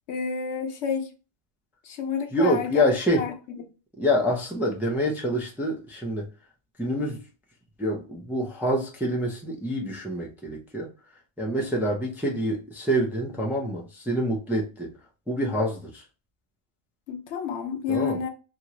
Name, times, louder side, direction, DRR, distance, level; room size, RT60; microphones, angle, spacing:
voice 1, 0.1-1.1 1.8-2.9 3.1-3.3 17.1-18.3, left 6 dB, 85° left, 1.0 m, -29 dB
voice 2, 2.3-3.3 4.0-6.2 6.8-7.2 7.8-10.9 11.4-14.9 15.3-16.0 17.9-18.2, equal, ahead, 0.4 m, -26 dB
2.9 x 2.5 x 2.9 m
omnidirectional pair, 1.1 m